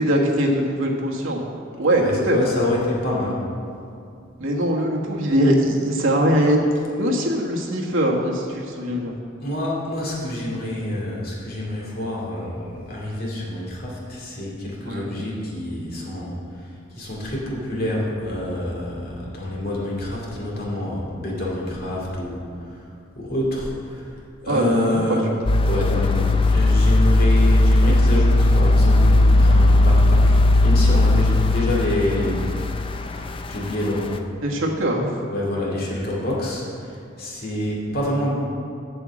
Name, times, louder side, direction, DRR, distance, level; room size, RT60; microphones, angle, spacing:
voice 1, 0.0-1.4 1.8-2.4 4.4-6.6 7.0-9.1 14.9-15.2 21.7-21.8 24.5-25.0 34.4-35.1, equal, 75° right, -1 dB, 1.4 m, -21 dB
voice 2, 1.9-3.5 9.4-16.3 16.9-22.5 23.2-24.1 24.4-25.2 25.6-32.6 33.5-34.2 35.3-38.5, left 1 dB, 45° left, -4 dB, 2.3 m, -27 dB
sound 1, 25.5-33.7 34.1-34.2, left 2 dB, 25° left, 0.4 m, -17 dB
8.3 x 6.1 x 7.4 m, 2.5 s
head